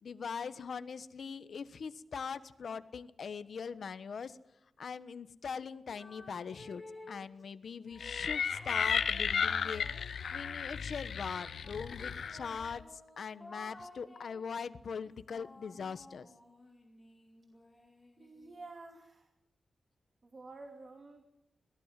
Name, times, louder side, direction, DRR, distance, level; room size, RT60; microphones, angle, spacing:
voice 1, 0.0-4.4 4.8-9.9 10.3-16.3, left 6 dB, 70° left, 13 dB, 1.2 m, -41 dB
sound 1, 5.9-7.3 7.9-10.8 11.6-14.5 15.0-18.7, left 2 dB, 15° left, 4.3 m, -54 dB
sound 2, 8.0-12.8, left 7 dB, 85° left, 1.2 m, -34 dB
voice 2, 18.2-19.3 20.2-21.2, right 3 dB, 40° right, 5 dB, 2.5 m, -50 dB
22.5 x 17.0 x 7.6 m, 0.88 s
wide cardioid pair, 120°, 0 cm